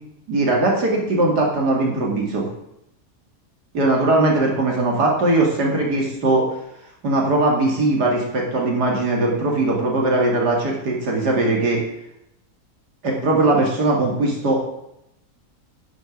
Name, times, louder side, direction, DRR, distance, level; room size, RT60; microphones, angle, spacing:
voice 1, 0.3-2.5 3.7-6.4 7.0-11.8 13.0-14.6, right 2 dB, 85° right, -1 dB, 2.9 m, -20 dB
10.5 x 7.0 x 6.4 m, 0.82 s
omnidirectional pair, 1.7 m